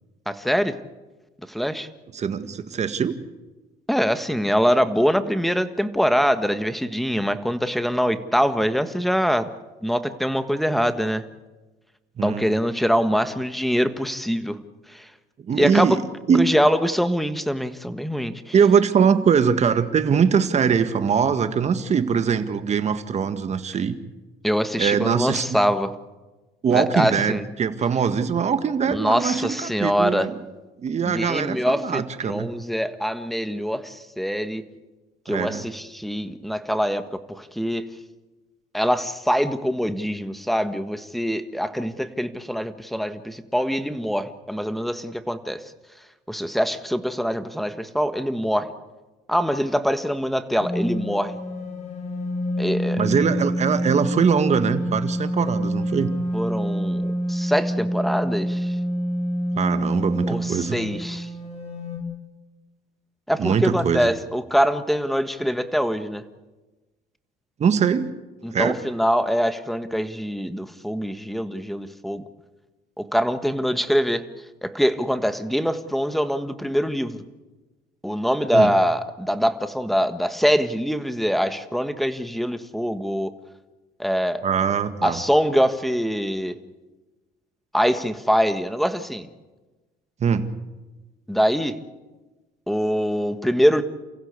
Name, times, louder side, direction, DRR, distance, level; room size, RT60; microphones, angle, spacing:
voice 1, 0.3-0.7 1.5-1.9 3.9-9.4 9.8-11.2 12.2-14.6 14.9-15.1 15.6-16.0 16.4-18.5 24.4-25.9 26.7-27.4 28.9-30.3 31.0-34.6 35.2-37.0 37.3-37.9 38.7-45.6 46.3-48.7 49.3-51.3 52.6-53.1 56.3-58.7 60.3-61.3 63.3-66.2 68.4-72.2 73.0-74.2 74.6-77.2 78.0-83.3 84.0-84.4 85.0-86.6 87.7-89.3 91.3-91.8 92.7-93.8, equal, ahead, 10 dB, 1.5 m, -23 dB
voice 2, 2.1-3.1 12.2-12.5 15.5-16.0 16.3-16.5 18.5-24.0 24.8-25.6 26.6-30.4 30.8-32.5 35.3-35.6 53.0-56.2 59.5-60.8 63.4-64.1 67.6-68.1 68.5-68.8 78.5-78.7 84.4-85.2 90.2-90.5, right 6 dB, 40° right, 10 dB, 1.8 m, -22 dB
sound 1, 50.6-62.0, equal, 40° left, 7.7 m, -27 dB
29.0 x 15.5 x 8.4 m, 1.2 s
cardioid pair, 110°, 17 cm